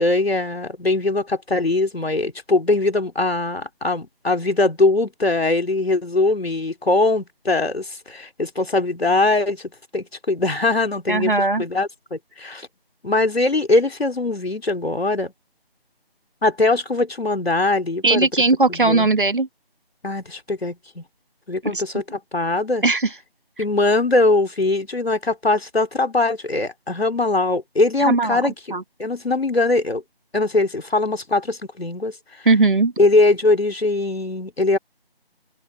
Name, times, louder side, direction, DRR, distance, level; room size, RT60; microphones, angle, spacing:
voice 1, 0.0-12.7 13.0-15.3 16.4-18.3 18.7-19.1 20.0-21.0 21.5-22.8 23.6-28.5 29.0-30.0 30.3-32.2 33.0-34.8, left 2 dB, 75° left, 2.9 m, -21 dB
voice 2, 11.1-11.6 18.0-19.5 21.6-21.8 22.8-23.1 28.0-28.4 28.7-28.8 32.4-32.9, right 3 dB, 55° right, 1.7 m, -18 dB
open air
figure-of-eight pair, 175°, 31 cm